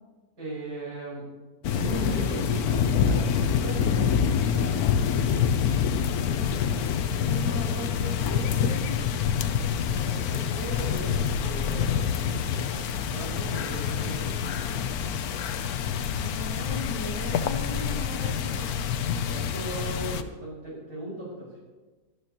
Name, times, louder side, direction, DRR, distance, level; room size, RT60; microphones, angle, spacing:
voice 1, 0.4-1.2 1.7-5.4 10.0-14.8 19.2-21.6, right 2 dB, 75° right, -5 dB, 5.7 m, -38 dB
sound 1, 1.6-20.2, left 7 dB, 75° left, 1.2 m, -26 dB
voice 2, 7.3-9.1 16.2-18.7, left 1 dB, 25° left, -6 dB, 3.7 m, -37 dB
18.5 x 12.5 x 3.0 m, 1.3 s
omnidirectional pair, 1.7 m